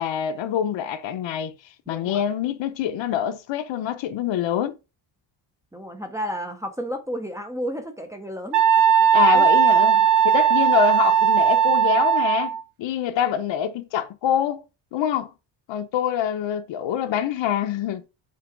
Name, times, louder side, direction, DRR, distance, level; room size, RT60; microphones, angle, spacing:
voice 1, 0.0-1.5 1.9-4.7 9.1-12.5 12.8-14.6 14.9-15.3 15.7-18.0, left 9 dB, 70° left, 0.9 m, -25 dB
voice 2, 1.9-2.2 5.7-8.6 9.1-9.4, equal, 5° right, 0.7 m, -32 dB
Wind instrument woodwind instrument, 8.5-12.6, right 9 dB, 60° right, 0.8 m, -18 dB
5.8 x 3.8 x 4.9 m
cardioid pair, 175°, 46 cm